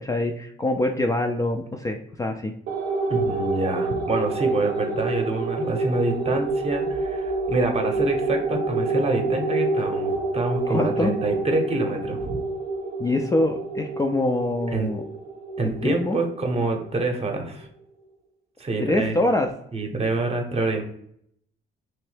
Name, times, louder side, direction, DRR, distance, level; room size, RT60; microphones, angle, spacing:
voice 1, 0.0-2.5 10.7-11.1 13.0-15.0 15.6-16.2 18.8-19.5, left 2 dB, 15° left, 3 dB, 0.3 m, -24 dB
sound 1, 2.7-17.4, right 3 dB, 65° right, 0.6 m, -28 dB
voice 2, 3.1-12.4 14.7-14.9 15.6-17.7 18.6-19.1 19.7-20.8, right 2 dB, 30° right, 3 dB, 0.8 m, -26 dB
3.0 x 2.7 x 3.2 m, 0.70 s
cardioid pair, 90°, 20 cm